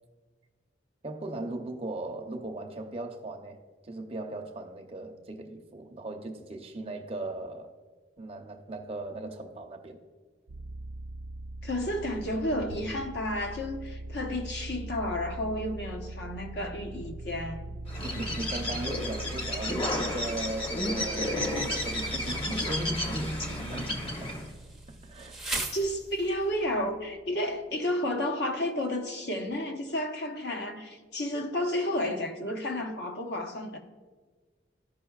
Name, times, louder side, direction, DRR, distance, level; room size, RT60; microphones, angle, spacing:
voice 1, 1.0-3.6 3.8-7.7 8.2-10.0 18.0-23.9 24.2-24.4 24.9-25.4, right 1 dB, 30° right, 0.7 m, -37 dB
sound 1, 10.5-27.1, right 1 dB, 65° right, 0.4 m, -41 dB
voice 2, 11.6-17.7 25.5-33.8, left 1 dB, 60° left, 0.9 m, -31 dB
Bird, 17.9-24.5, left 1 dB, 30° left, 0.9 m, -32 dB
Insect, 21.6-26.5, right 2 dB, ahead, 0.7 m, -41 dB
14.5 x 5.4 x 2.3 m
head